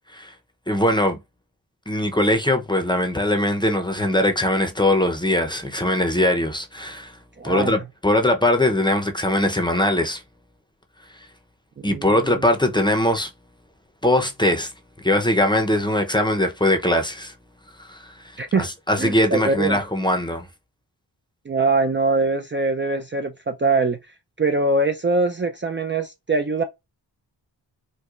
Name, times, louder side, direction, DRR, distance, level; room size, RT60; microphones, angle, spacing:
voice 1, 0.7-1.2 1.9-7.1 7.4-10.2 11.8-13.3 14.0-14.7 15.0-17.3 17.9-18.1 18.6-20.5, left 1 dB, 10° left, 0.7 m, -21 dB
voice 2, 7.4-7.8 11.8-12.4 18.4-18.7 19.0-19.8 21.5-24.0 24.4-26.6, right 3 dB, 25° right, 0.5 m, -23 dB
4.6 x 2.2 x 2.4 m
cardioid pair, 65°, 43 cm